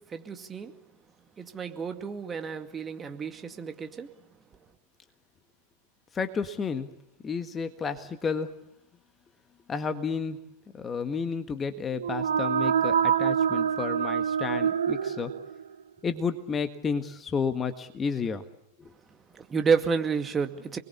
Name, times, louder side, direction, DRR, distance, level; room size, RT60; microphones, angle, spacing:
voice 1, 0.1-0.7 1.4-4.1 19.3-20.8, right 5 dB, 20° right, 6 dB, 2.3 m, -30 dB
voice 2, 6.1-6.9 7.2-8.5 9.7-10.4 10.7-15.3 16.0-18.4 18.8-18.9, left 5 dB, 20° left, 9 dB, 1.6 m, -31 dB
sound 1, 11.9-15.7, right 8 dB, 70° right, 1.1 m, -26 dB
28.5 x 21.5 x 8.4 m, 0.76 s
figure-of-eight pair, 90°, 0 cm